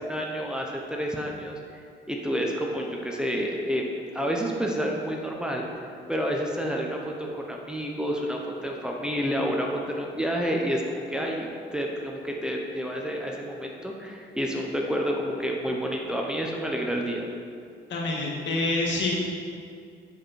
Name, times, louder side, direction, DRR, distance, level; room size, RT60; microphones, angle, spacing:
voice 1, 0.0-1.6 2.1-3.9 4.1-5.7 6.1-17.3, equal, 5° right, -1 dB, 1.0 m, -29 dB
voice 2, 17.9-19.1, left 2 dB, 65° left, -3 dB, 2.0 m, -27 dB
11.0 x 5.1 x 4.3 m, 2.3 s
cardioid pair, 90°, 20 cm